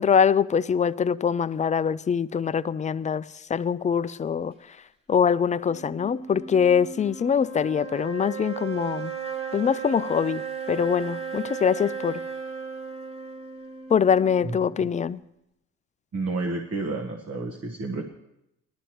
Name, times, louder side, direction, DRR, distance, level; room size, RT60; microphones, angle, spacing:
voice 1, 0.0-3.2 3.5-4.5 5.1-9.1 9.5-10.4 10.7-12.2 13.9-15.2, left 7 dB, 25° left, 0.3 m, -23 dB
sound 1, 5.6-15.0, right 6 dB, 20° right, 1.5 m, -36 dB
voice 2, 16.1-18.0, right 3 dB, 55° right, 1.4 m, -30 dB
18.5 x 12.5 x 3.0 m
cardioid pair, 90°, 30 cm